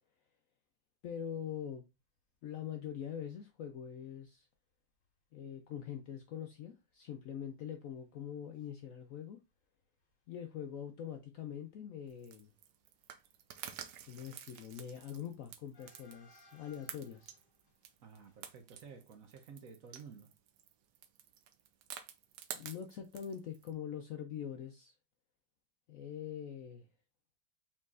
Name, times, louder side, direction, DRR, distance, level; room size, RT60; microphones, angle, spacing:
voice 1, 1.0-1.8 2.4-4.5 5.3-9.4 10.3-12.5 14.0-17.4 22.5-24.9 25.9-26.9, left 9 dB, 70° left, 0.8 m, -44 dB
sound 1, 3.7-3.8 4.0-4.2 5.0-5.1 5.5-5.7 6.0-6.1 6.5-8.7 8.9-9.6 9.9-19.0, left 1 dB, 35° left, 1.3 m, -69 dB
sound 2, 12.1-23.7, right 9 dB, 80° right, 1.2 m, -50 dB
voice 2, 18.0-20.3, right 6 dB, 60° right, 1.0 m, -53 dB
4.4 x 3.9 x 2.4 m
omnidirectional pair, 1.8 m